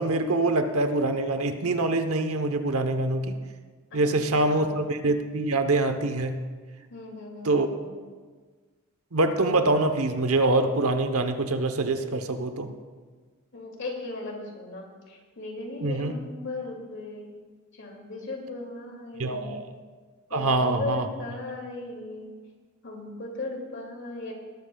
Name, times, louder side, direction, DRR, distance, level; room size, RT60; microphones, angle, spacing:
voice 1, 0.0-3.3 3.9-6.4 7.4-7.7 9.1-12.7 15.8-16.1 19.2-19.7 20.3-21.1, right 2 dB, 75° right, 7 dB, 1.0 m, -24 dB
voice 2, 3.9-4.8 6.9-8.0 13.5-17.4 17.7-19.7 20.3-22.3 22.8-24.3, left 2 dB, 55° left, 0 dB, 2.5 m, -37 dB
19.5 x 13.0 x 2.3 m, 1.5 s
head